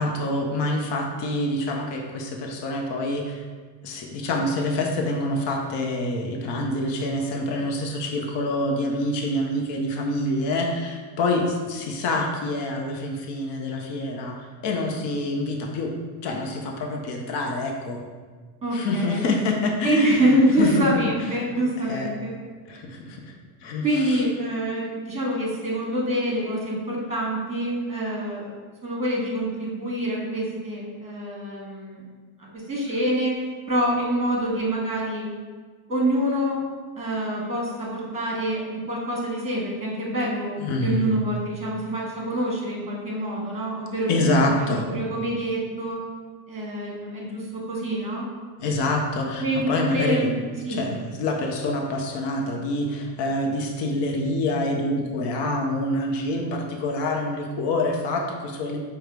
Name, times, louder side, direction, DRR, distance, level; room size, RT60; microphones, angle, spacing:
voice 1, 0.0-3.4 3.8-15.9 16.2-18.0 18.7-20.3 20.6-20.9 21.9-22.1 22.7-23.3 23.6-24.2 40.6-41.1 44.1-44.9 48.6-50.3 50.7-58.8, left 2 dB, 60° left, 1 dB, 0.8 m, -26 dB
voice 2, 18.6-19.3 19.8-22.3 23.8-28.5 28.8-32.0 32.4-33.4 33.7-35.2 35.9-36.6 37.0-46.0 46.5-48.3 49.4-50.8, right 1 dB, 15° right, -4 dB, 1.5 m, -26 dB
4.9 x 2.3 x 4.6 m, 1.4 s
cardioid pair, 115°, 48 cm